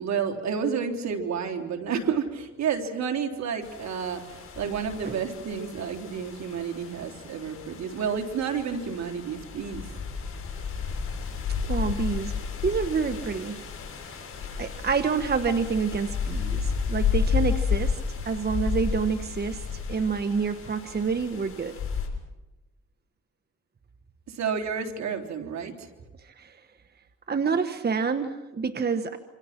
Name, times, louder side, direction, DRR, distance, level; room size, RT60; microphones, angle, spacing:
voice 1, 0.0-9.9 24.3-25.9, right 6 dB, 65° right, 4 dB, 3.7 m, -30 dB
sound 1, 3.6-22.1, left 6 dB, 45° left, 6.9 m, -32 dB
voice 2, 11.7-13.6 14.1-14.2 14.6-18.0 18.2-21.8 26.2-26.6 27.3-29.2, right 5 dB, 35° right, 9 dB, 1.4 m, -28 dB
27.5 x 26.5 x 6.0 m, 1.1 s
cardioid pair, 90°, 30 cm